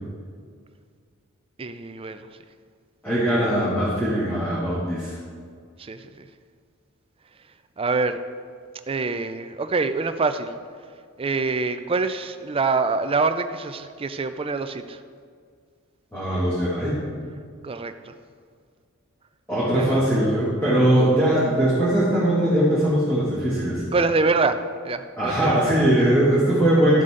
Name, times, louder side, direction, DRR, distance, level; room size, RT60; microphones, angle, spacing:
voice 1, 1.6-2.3 5.8-6.2 7.8-8.2 8.9-10.6 11.2-15.0 17.6-18.1 19.7-20.0 23.9-25.7, right 3 dB, 25° right, 9 dB, 0.4 m, -25 dB
voice 2, 3.0-5.1 16.1-17.0 19.5-23.8 25.2-27.0, right 1 dB, 10° left, -11 dB, 2.4 m, -20 dB
13.0 x 7.7 x 3.8 m, 2.1 s
head